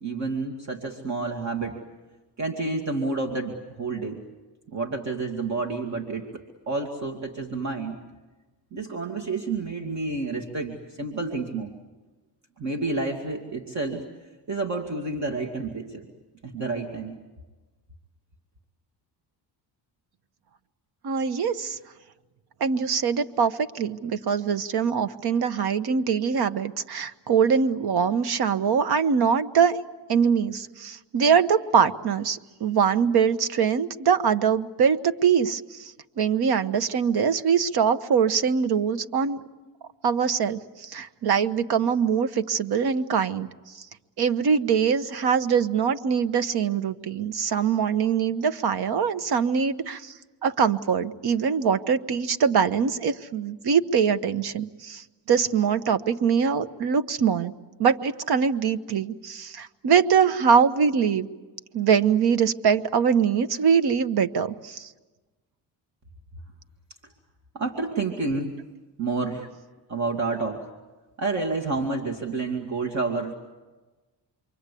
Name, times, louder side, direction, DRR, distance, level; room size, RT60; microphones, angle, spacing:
voice 1, 0.0-1.8 2.4-4.2 4.7-8.0 8.7-11.7 12.6-14.0 14.5-16.1 16.4-17.2 67.5-68.6 69.0-69.5 69.9-70.7 71.2-73.3, right 3 dB, 40° right, 2 dB, 2.5 m, -29 dB
voice 2, 21.0-21.8 22.6-29.8 30.1-39.4 40.0-43.5 43.8-43.9 44.2-50.1 50.4-57.5 57.8-61.3 61.7-64.9, right 6 dB, 65° right, 12 dB, 1.3 m, -23 dB
28.0 x 23.5 x 8.5 m, 1.2 s
cardioid pair, 120°, 42 cm